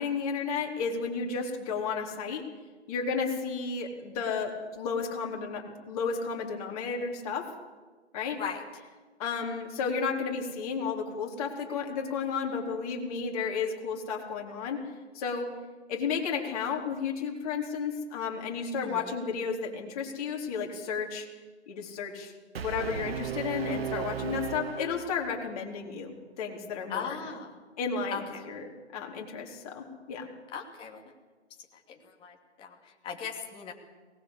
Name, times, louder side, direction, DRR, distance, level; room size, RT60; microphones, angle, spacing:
voice 1, 0.0-2.4 2.9-7.5 8.1-8.4 9.2-14.9 15.1-15.5 15.9-21.3 21.7-22.3 22.6-27.2 27.8-30.3, left 5 dB, 30° left, 1 dB, 4.1 m, -33 dB
voice 2, 18.8-19.1 24.3-24.4 26.9-27.6 28.1-28.5 30.5-31.0 31.9-33.7, left 6 dB, 15° left, 1 dB, 2.7 m, -38 dB
Brass instrument, 22.5-25.6, right 9 dB, 55° right, 1.8 m, -36 dB
22.5 x 19.5 x 8.3 m, 1.3 s
figure-of-eight pair, 145°, 35 cm